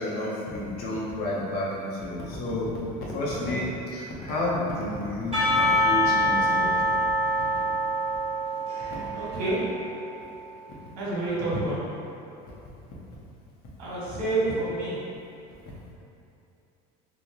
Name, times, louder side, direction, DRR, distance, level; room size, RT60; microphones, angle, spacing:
voice 1, 0.0-2.8 3.1-6.9 7.5-7.6, left 1 dB, 55° left, -5 dB, 0.9 m, -30 dB
Percussion / Church bell, 5.3-10.3, equal, 30° right, 1.3 m, -25 dB
voice 2, 9.1-9.6 11.0-11.8 13.8-15.0, right 2 dB, 80° right, -7 dB, 1.3 m, -28 dB
3.1 x 2.4 x 3.9 m, 2.7 s
supercardioid pair, 120°, 20 cm